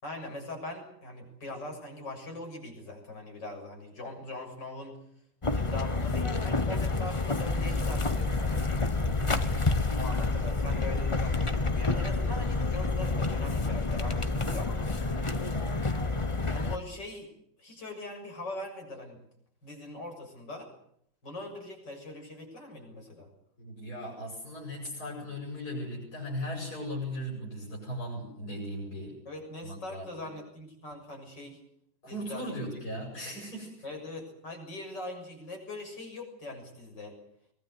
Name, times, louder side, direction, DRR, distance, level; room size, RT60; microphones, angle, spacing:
voice 1, 0.0-5.0 5.5-9.1 9.9-14.8 16.5-17.3 17.6-19.2 19.6-20.7 21.2-23.3 29.3-31.6 32.1-32.5 33.8-37.2, left 2 dB, 75° left, 3 dB, 7.6 m, -41 dB
sound 1, 5.4-16.8, left 3 dB, 20° left, 1.0 m, -29 dB
voice 2, 15.1-15.7 23.6-29.2 29.6-30.3 32.0-33.8, equal, 60° left, -4 dB, 8.6 m, -38 dB
23.0 x 22.0 x 8.2 m, 0.70 s
omnidirectional pair, 1.9 m